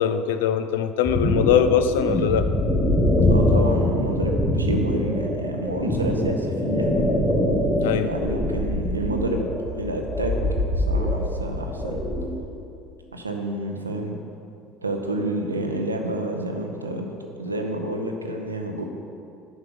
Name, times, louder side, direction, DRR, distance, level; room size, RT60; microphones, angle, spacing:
voice 1, 0.0-2.5 7.8-8.1, left 8 dB, 70° left, 10 dB, 0.3 m, -21 dB
sound 1, 1.0-12.2, left 1 dB, 10° left, 1.8 m, -23 dB
voice 2, 3.3-7.1 8.0-9.5 9.7-10.4 10.8-12.0 13.1-14.2 14.8-17.1 17.4-18.9, right 1 dB, 90° right, 3 dB, 0.6 m, -29 dB
5.9 x 5.6 x 5.5 m, 2.6 s
figure-of-eight pair, 65°, 0 cm